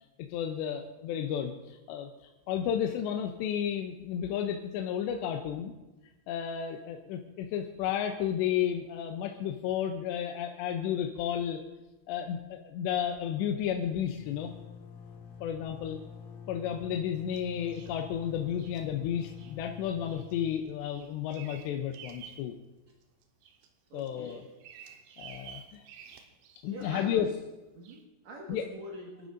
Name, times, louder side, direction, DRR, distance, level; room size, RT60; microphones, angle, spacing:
voice 1, 0.3-2.1 2.5-5.7 6.3-11.6 12.1-14.5 15.4-16.0 16.5-22.5 23.9-24.4 25.2-25.8 26.6-27.3 28.5-28.6, left 9 dB, 80° left, 4 dB, 2.9 m, -32 dB
sound 1, 11.5-11.6 11.9-12.0 12.2-22.9, left 6 dB, 65° left, 2.6 m, -50 dB
Bird vocalization bird call bird song, 17.3-18.0 18.6-18.8 19.4-19.6 20.1-20.4 20.7-22.5 22.9-23.7 24.0-27.2 27.8-28.0, right 8 dB, 85° right, 3.5 m, -51 dB
voice 2, 23.9-24.5 26.7-27.4 27.7-29.3, right 1 dB, 55° right, -3 dB, 2.3 m, -45 dB
29.0 x 11.5 x 2.6 m, 1.1 s
omnidirectional pair, 5.2 m